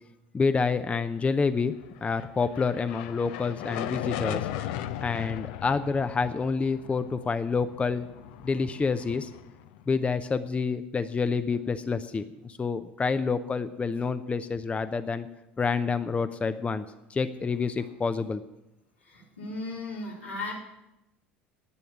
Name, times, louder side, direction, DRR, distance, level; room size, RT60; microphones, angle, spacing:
voice 1, 0.3-1.7 2.0-4.5 5.0-8.1 8.4-9.3 9.9-15.3 15.6-16.8 17.1-18.4, left 4 dB, 20° left, 11 dB, 0.6 m, -28 dB
sound 1, 1.8-10.2, left 12 dB, 65° left, 0.6 m, -38 dB
voice 2, 19.1-20.5, left 2 dB, 90° left, -6 dB, 4.0 m, -36 dB
11.0 x 9.2 x 7.1 m, 0.92 s
figure-of-eight pair, 65°, 6 cm